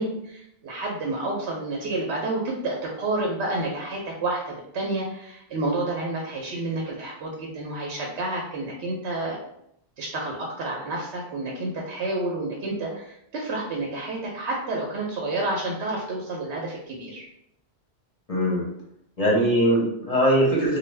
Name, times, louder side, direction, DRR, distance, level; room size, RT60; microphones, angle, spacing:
voice 1, 0.0-9.4 10.0-17.3, right 2 dB, 80° right, -2 dB, 0.9 m, -29 dB
voice 2, 18.3-18.6 19.2-20.8, equal, 40° left, -5 dB, 0.8 m, -21 dB
2.4 x 2.2 x 3.2 m, 0.74 s
omnidirectional pair, 1.1 m